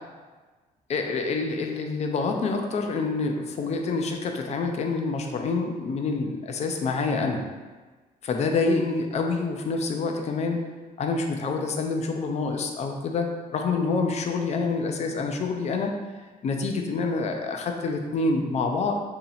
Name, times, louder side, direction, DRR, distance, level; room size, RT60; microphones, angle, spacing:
voice 1, 0.9-7.4 8.2-10.6 11.0-16.0 16.4-19.0, left 4 dB, 40° left, 4 dB, 0.5 m, -27 dB
2.9 x 2.8 x 4.0 m, 1.3 s
cardioid pair, 110°, 17 cm